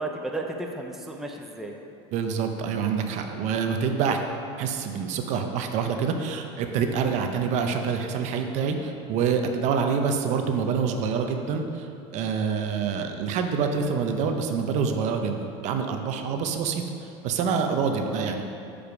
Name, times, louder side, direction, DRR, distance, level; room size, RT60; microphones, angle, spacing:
voice 1, 0.0-1.7 18.0-18.4, right 2 dB, ahead, 1 dB, 0.6 m, -34 dB
voice 2, 2.1-4.2 4.6-11.9 12.1-18.4, right 6 dB, 50° right, 5 dB, 0.7 m, -26 dB
6.9 x 5.0 x 6.0 m, 2.7 s
supercardioid pair, 125°, 15 cm